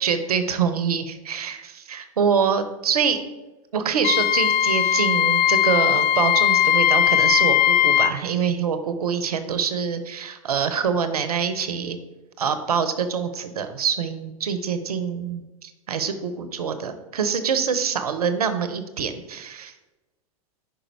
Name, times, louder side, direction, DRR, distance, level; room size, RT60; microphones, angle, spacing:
voice 1, 0.0-3.2 3.7-12.0 12.4-19.7, right 6 dB, 85° right, 10 dB, 0.7 m, -25 dB
Wind instrument woodwind instrument, 4.0-8.2, left 10 dB, 45° left, 0.4 m, -19 dB
5.1 x 5.0 x 4.5 m, 1.1 s
hypercardioid pair, 100°, 19 cm